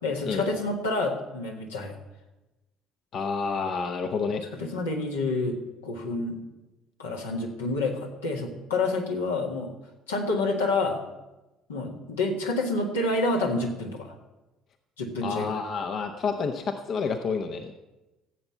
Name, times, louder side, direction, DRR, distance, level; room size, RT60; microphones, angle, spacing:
voice 1, 0.0-2.0 4.5-5.6 5.8-6.4 7.0-9.7 10.1-11.0 11.7-14.1 15.0-15.5, left 2 dB, 80° left, 0 dB, 1.8 m, -28 dB
voice 2, 3.1-4.4 15.2-17.7, left 5 dB, 50° left, 6 dB, 0.9 m, -29 dB
15.0 x 7.9 x 5.7 m, 1.0 s
figure-of-eight pair, 55°, 0 cm